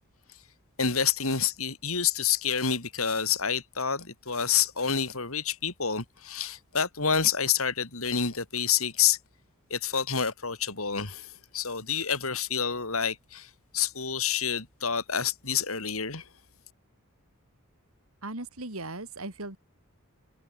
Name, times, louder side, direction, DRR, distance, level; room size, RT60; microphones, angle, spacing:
voice 1, 0.8-9.2 9.7-16.2, left 7 dB, 70° left, 4.4 m, -28 dB
voice 2, 18.2-19.6, right 2 dB, 70° right, 4.1 m, -37 dB
head